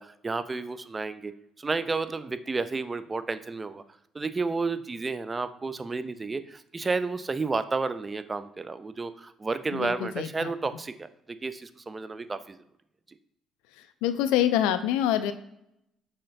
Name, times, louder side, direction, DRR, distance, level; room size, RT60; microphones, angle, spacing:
voice 1, 0.0-1.3 1.6-3.8 4.1-12.6, right 3 dB, 25° right, 12 dB, 0.3 m, -31 dB
voice 2, 9.7-10.5 14.0-15.3, left 11 dB, 90° left, 11 dB, 0.3 m, -25 dB
5.6 x 3.2 x 2.6 m, 0.79 s
supercardioid pair, 80°, 0 cm